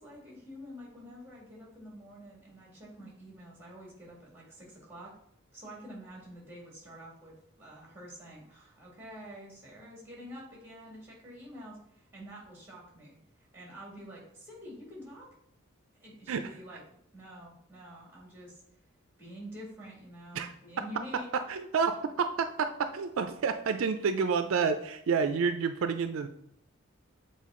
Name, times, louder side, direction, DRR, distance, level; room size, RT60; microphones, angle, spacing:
voice 1, 0.0-5.1 5.5-15.3 16.0-16.8 17.1-18.6 19.2-21.3, equal, 10° right, -3 dB, 2.0 m, -48 dB
voice 2, 21.5-22.7 22.9-26.3, right 5 dB, 70° right, 9 dB, 0.4 m, -29 dB
7.4 x 4.1 x 3.7 m, 0.74 s
head